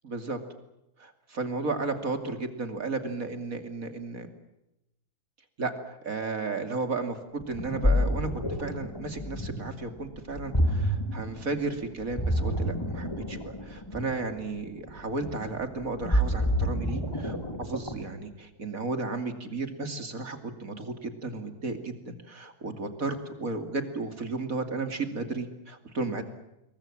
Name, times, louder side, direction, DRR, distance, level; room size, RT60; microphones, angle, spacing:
voice 1, 0.0-0.4 1.0-4.3 5.6-8.3 8.6-26.2, right 3 dB, 60° right, 7 dB, 3.1 m, -34 dB
Ocean, 7.4-18.2, equal, 15° left, 2.9 m, -29 dB
28.0 x 22.5 x 7.4 m, 0.89 s
omnidirectional pair, 1.6 m